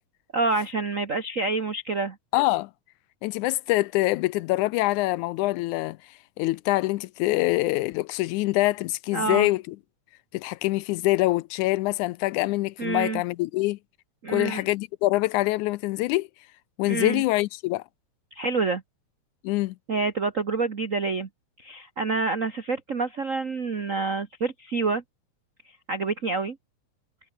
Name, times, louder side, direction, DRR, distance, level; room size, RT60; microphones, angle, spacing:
voice 1, 0.3-2.2 9.1-9.5 12.8-13.2 14.2-14.6 16.8-17.2 18.3-18.8 19.9-21.3 21.6-25.0 25.9-26.6, right 3 dB, 65° right, 0.7 m, -27 dB
voice 2, 2.3-2.7 3.2-6.0 6.4-9.8 10.3-13.8 14.3-16.3 16.8-17.8 19.4-19.8, left 19 dB, 80° left, 1.9 m, -25 dB
omnidirectional pair, 3.6 m